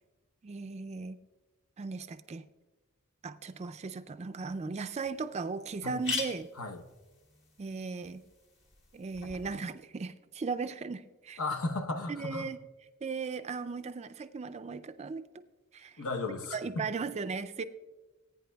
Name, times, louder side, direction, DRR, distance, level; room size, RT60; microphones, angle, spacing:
voice 1, 0.4-1.2 1.8-2.4 3.2-6.5 7.6-8.2 8.9-11.4 12.1-12.6 13.0-15.2 15.7-16.0 16.5-17.6, right 4 dB, 30° right, 11 dB, 0.4 m, -37 dB
sound 1, 4.5-4.6 5.0-5.1 5.3-5.4 5.8-9.5, left 4 dB, 55° left, 1.9 m, -41 dB
voice 2, 11.4-12.5 16.0-16.6, left 3 dB, 70° left, 6 dB, 1.0 m, -35 dB
20.0 x 9.1 x 2.3 m, 1.2 s
head